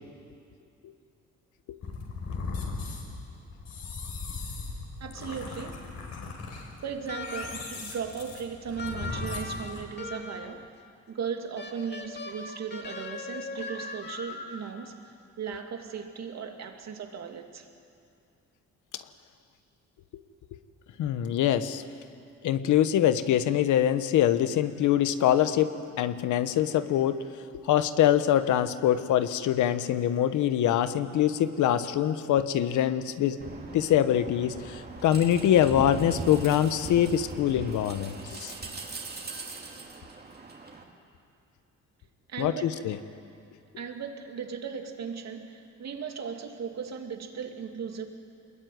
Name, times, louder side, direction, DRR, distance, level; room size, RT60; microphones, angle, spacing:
sound 1, 1.8-9.8, left 4 dB, 65° left, 5.8 m, -38 dB
voice 1, 5.0-5.8 6.8-10.7 11.1-15.1 15.4-17.7 42.3-42.8 43.8-48.1, right 6 dB, 65° right, 4 dB, 2.6 m, -37 dB
sound 2, 7.1-7.8 8.8-10.6 11.6-14.8, left 3 dB, 35° left, 2.5 m, -39 dB
voice 2, 21.0-21.8 22.4-27.2 27.5-33.4 33.7-38.5 42.4-43.0, left 11 dB, 85° left, 11 dB, 1.2 m, -24 dB
sound 3, 33.4-40.8, right 3 dB, 35° right, 3.2 m, -40 dB
24.5 x 21.0 x 9.4 m, 2.5 s
cardioid pair, 100°, 29 cm